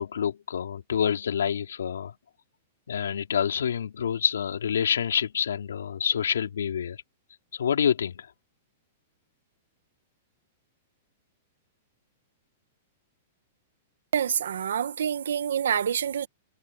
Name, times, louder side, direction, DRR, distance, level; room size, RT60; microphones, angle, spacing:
voice 1, 0.0-2.1 2.9-7.0 7.5-8.3, left 8 dB, 85° left, 3.6 m, -27 dB
voice 2, 14.1-16.3, right 8 dB, 80° right, 1.5 m, -27 dB
hypercardioid pair, 125°, 0 cm